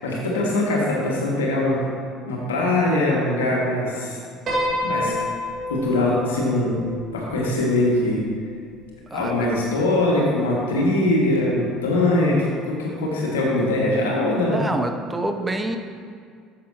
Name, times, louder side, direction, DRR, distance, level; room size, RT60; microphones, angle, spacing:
voice 1, 0.0-1.8 2.3-4.2 4.8-5.1 5.7-6.8 7.1-8.2 9.1-14.6, left 2 dB, 75° left, -3 dB, 2.0 m, -22 dB
Piano, 4.5-8.9, left 1 dB, 40° right, 2.5 m, -29 dB
voice 2, 9.1-9.5 14.5-15.8, right 2 dB, 15° right, 5 dB, 0.8 m, -27 dB
13.0 x 7.7 x 2.9 m, 2.2 s
figure-of-eight pair, 60°, 0 cm